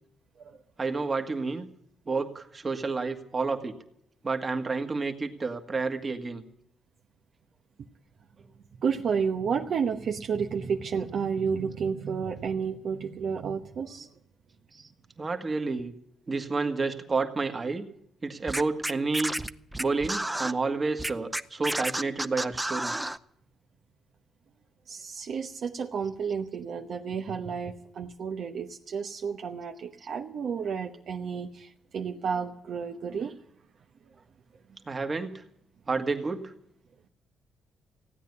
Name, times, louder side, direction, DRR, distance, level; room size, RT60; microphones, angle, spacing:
voice 1, 0.8-1.7 2.1-3.7 4.2-6.4 14.7-14.9 15.2-15.9 16.3-17.9 18.2-19.3 19.8-22.9 34.9-35.3 35.9-36.5, right 3 dB, 30° right, 6 dB, 1.7 m, -30 dB
voice 2, 8.8-14.1 24.9-33.4, right 6 dB, 60° right, 4 dB, 1.0 m, -31 dB
Scratching (performance technique), 18.5-20.5 21.0-23.2, right 1 dB, 10° right, 0.6 m, -31 dB
16.0 x 9.4 x 9.6 m, 0.73 s
cardioid pair, 90°, 0 cm